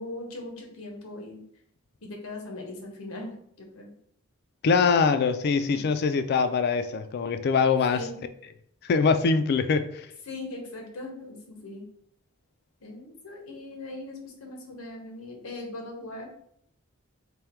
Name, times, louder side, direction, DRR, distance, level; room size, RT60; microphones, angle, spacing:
voice 1, 0.0-1.4 2.0-4.0 7.9-8.2 10.3-11.9 12.8-16.4, left 2 dB, 85° left, 0.9 m, -40 dB
voice 2, 4.6-8.1 8.8-10.1, left 5 dB, 50° left, 0.3 m, -23 dB
3.5 x 2.2 x 4.3 m
head